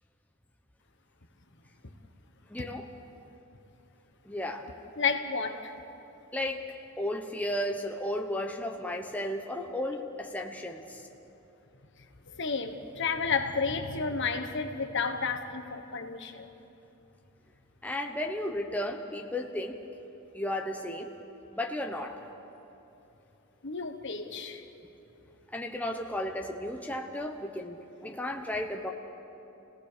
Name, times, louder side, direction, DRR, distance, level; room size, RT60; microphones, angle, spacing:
voice 1, 2.5-2.9 4.2-4.7 6.3-11.1 17.8-19.8 20.3-21.1 21.5-22.3 25.5-28.9, left 1 dB, 5° left, 2 dB, 1.1 m, -34 dB
voice 2, 5.0-5.7 12.3-16.5 23.6-24.6, left 5 dB, 55° left, 6 dB, 1.3 m, -31 dB
29.5 x 18.0 x 6.8 m, 3.0 s
head